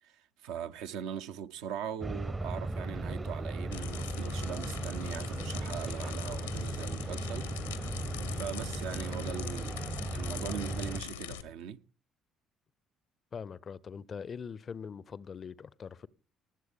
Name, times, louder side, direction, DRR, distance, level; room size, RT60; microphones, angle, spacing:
voice 1, 0.0-7.9 8.3-9.7 10.1-11.8, right 8 dB, 65° right, 0.6 m, -41 dB
sound 1, 2.0-11.0, right 2 dB, 20° right, 0.7 m, -37 dB
sound 2, 3.7-11.4, left 9 dB, 80° left, 0.7 m, -42 dB
voice 2, 13.3-16.1, left 6 dB, 40° left, 0.5 m, -42 dB
20.0 x 7.7 x 3.5 m
figure-of-eight pair, 50°, 0 cm